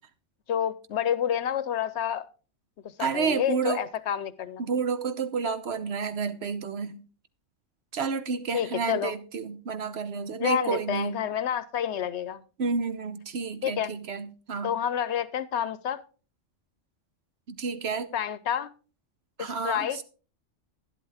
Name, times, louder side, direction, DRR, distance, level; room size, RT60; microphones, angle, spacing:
voice 1, 0.5-2.2 3.0-4.6 8.5-9.1 10.4-12.4 13.6-13.9 14.6-16.0 18.1-18.7 19.4-20.0, left 9 dB, 65° left, 0.9 m, -29 dB
voice 2, 3.0-3.8 4.6-7.0 7.9-11.2 12.6-14.7 17.5-18.1 19.4-19.9, right 5 dB, 60° right, 1.0 m, -30 dB
11.5 x 10.5 x 3.5 m
omnidirectional pair, 1.3 m